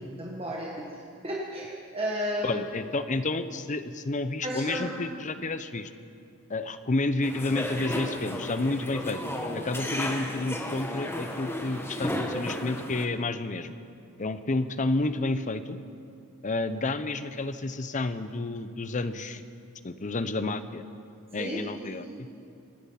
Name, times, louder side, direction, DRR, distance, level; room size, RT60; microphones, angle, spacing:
voice 1, 0.2-1.0 1.2-2.6 4.4-5.0 21.4-21.6 22.0-22.2, equal, 25° right, -3 dB, 1.5 m, -33 dB
voice 2, 2.4-5.9 6.5-9.2 9.5-13.7 14.2-15.8 16.4-19.4 19.8-20.8 21.3-22.3, left 2 dB, 35° left, 11 dB, 0.7 m, -30 dB
sound 1, 7.2-13.1, left 1 dB, 10° left, 1.2 m, -33 dB
24.5 x 9.6 x 5.8 m, 2.5 s
head